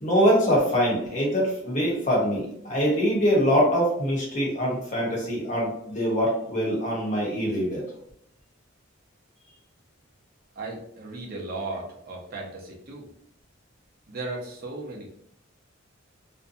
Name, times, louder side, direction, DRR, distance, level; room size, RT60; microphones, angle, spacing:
voice 1, 0.0-7.8, equal, 35° left, -4 dB, 0.9 m, -23 dB
voice 2, 10.6-13.1 14.1-15.1, right 2 dB, 45° right, -2 dB, 0.6 m, -36 dB
2.6 x 2.2 x 2.6 m, 0.72 s
head